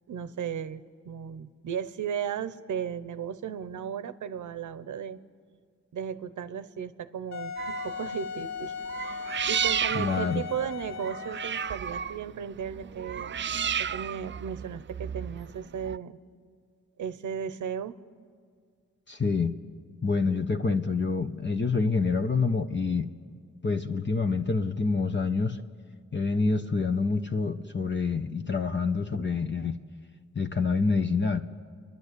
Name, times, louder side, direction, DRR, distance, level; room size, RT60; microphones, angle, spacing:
voice 1, 0.1-5.2 5.9-8.7 9.0-13.4 13.8-16.2 17.0-18.0, right 8 dB, 90° right, 14 dB, 0.8 m, -35 dB
Wind instrument woodwind instrument, 7.3-11.8, left 6 dB, 65° left, 0.8 m, -38 dB
sound 1, 7.6-8.1 8.8-16.0, right 8 dB, 40° right, 0.4 m, -33 dB
voice 2, 9.9-10.4 19.1-19.5 20.0-23.1 23.6-25.6 26.1-29.8 30.3-31.4, left 4 dB, 40° left, 6 dB, 1.1 m, -27 dB
28.5 x 11.0 x 8.4 m, 2.1 s
supercardioid pair, 40°, 29 cm